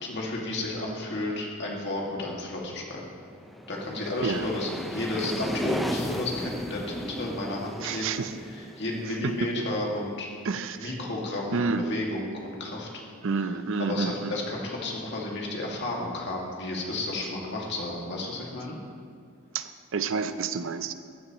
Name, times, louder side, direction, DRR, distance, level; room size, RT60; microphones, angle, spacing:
voice 1, 0.0-3.1 3.7-10.3 10.8-12.9 13.8-18.8, left 2 dB, 55° left, -2 dB, 2.0 m, -32 dB
sound 1, 3.3-10.0, equal, ahead, 0.5 m, -35 dB
voice 2, 4.2-4.5 7.8-8.3 9.2-9.3 10.4-10.9 11.5-11.9 13.2-14.3 19.5-20.9, right 5 dB, 60° right, 11 dB, 0.5 m, -29 dB
14.5 x 11.0 x 3.0 m, 2.2 s
head